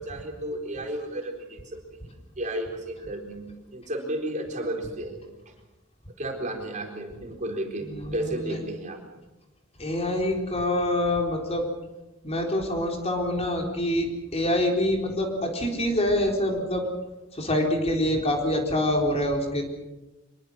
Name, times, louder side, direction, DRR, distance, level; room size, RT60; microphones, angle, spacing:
voice 1, 0.0-2.0 2.4-5.2 6.2-9.0 18.1-18.2, right 1 dB, 40° right, 2 dB, 4.1 m, -33 dB
voice 2, 7.9-8.6 9.8-11.7 12.2-16.9 17.3-19.6, left 1 dB, 30° left, 1 dB, 4.2 m, -26 dB
24.5 x 22.5 x 6.6 m, 1.1 s
head